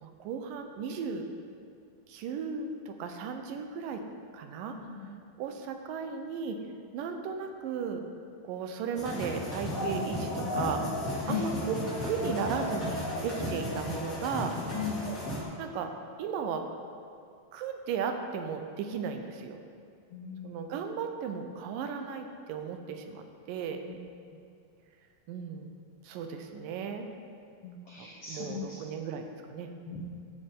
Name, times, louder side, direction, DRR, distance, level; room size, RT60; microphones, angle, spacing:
voice 1, 0.0-1.3 2.1-4.0 4.3-4.8 5.0-5.1 5.4-6.6 6.9-8.0 8.4-11.0 11.3-11.8 12.0-14.5 15.6-15.9 16.2-16.6 17.5-19.6 20.4-23.8 25.3-25.7 26.0-27.1 28.0-29.7, right 6 dB, 80° right, 5 dB, 2.4 m, -35 dB
voice 2, 4.7-5.1 11.3-11.4 14.7-15.0 20.1-20.5 23.9-24.0 27.6-28.8 29.9-30.0, left 9 dB, 80° left, -2 dB, 1.3 m, -37 dB
sound 1, 8.9-15.4, left 1 dB, 25° left, 2.3 m, -34 dB
14.5 x 6.9 x 3.7 m, 2.3 s
omnidirectional pair, 3.9 m